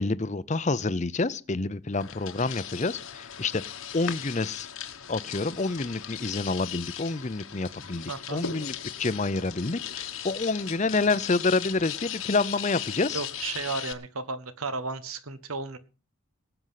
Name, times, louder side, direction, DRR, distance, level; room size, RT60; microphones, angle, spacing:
voice 1, 0.0-3.6 3.9-4.7 5.1-13.2, left 3 dB, 35° left, 0.6 m, -28 dB
sound 1, 1.9-13.9, left 9 dB, 75° left, 1.3 m, -38 dB
voice 2, 8.1-8.4 13.1-15.8, right 4 dB, 85° right, 1.3 m, -34 dB
19.0 x 8.0 x 5.7 m
head